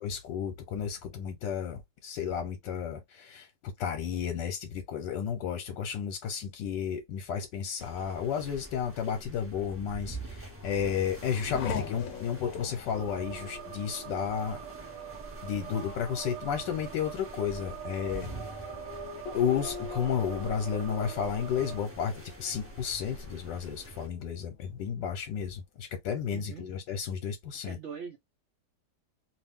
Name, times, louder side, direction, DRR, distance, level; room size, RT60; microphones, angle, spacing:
voice 1, 0.0-14.6 15.4-18.5 19.3-27.8, left 7 dB, 75° left, 1.3 m, -32 dB
sound 1, 7.8-24.1, right 2 dB, 15° right, 0.4 m, -46 dB
Race car auto racing / Accelerating revving vroom, 10.2-23.4 23.8-24.5, left 5 dB, 60° left, 1.0 m, -43 dB
sound 2, 12.9-21.9, right 11 dB, 75° right, 1.1 m, -44 dB
voice 2, 26.3-26.6 27.5-28.2, right 6 dB, 90° right, 0.6 m, -42 dB
2.9 x 2.6 x 3.5 m
omnidirectional pair, 2.0 m